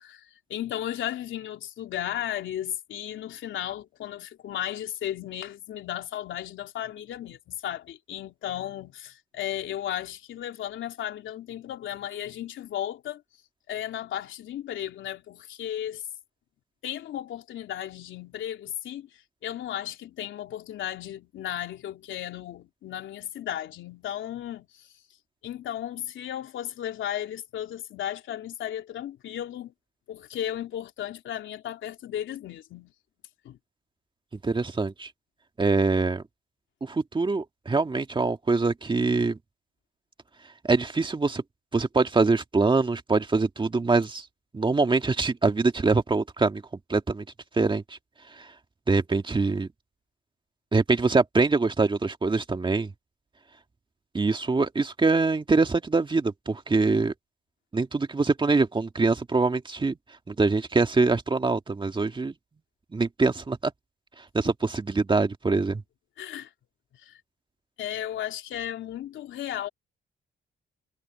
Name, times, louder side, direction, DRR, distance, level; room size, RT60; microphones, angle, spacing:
voice 1, 0.0-13.2 13.7-16.0 16.8-24.9 25.4-29.7 30.1-32.9 33.4-33.6 66.2-66.5 66.9-67.2 67.8-69.7, left 11 dB, 75° left, 3.3 m, -35 dB
voice 2, 34.4-35.1 35.6-36.2 36.8-39.4 40.6-41.4 41.7-44.2 44.5-46.6 46.9-47.3 47.5-47.8 48.4-48.5 48.9-49.7 50.7-52.9 54.1-57.1 57.7-60.0 60.3-62.3 62.9-63.7 64.3-65.8, right 3 dB, 25° right, 1.9 m, -24 dB
cardioid pair, 90°, 20 cm